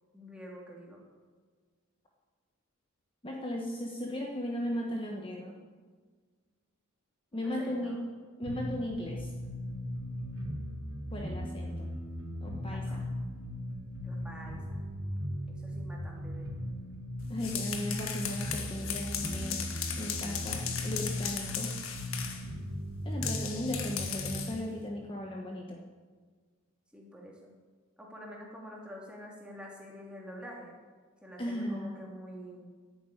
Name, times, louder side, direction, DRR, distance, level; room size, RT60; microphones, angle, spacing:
voice 1, 0.1-1.0 7.3-8.0 12.7-13.0 14.0-14.8 15.5-16.5 22.2-22.7 26.9-27.5 28.0-30.8 31.2-32.7, equal, 5° right, -2 dB, 2.8 m, -48 dB
voice 2, 3.2-5.6 7.3-8.0 8.4-9.3 11.1-11.9 12.4-13.0 17.3-19.6 20.0-21.8 23.0-25.8 31.4-32.0, left 1 dB, 25° left, 0 dB, 1.2 m, -36 dB
sound 1, 8.4-24.4, equal, 75° right, 4.1 m, -38 dB
sound 2, 17.2-22.5 23.2-24.6, left 7 dB, 75° left, 1.6 m, -37 dB
11.5 x 9.5 x 9.1 m, 1.5 s
head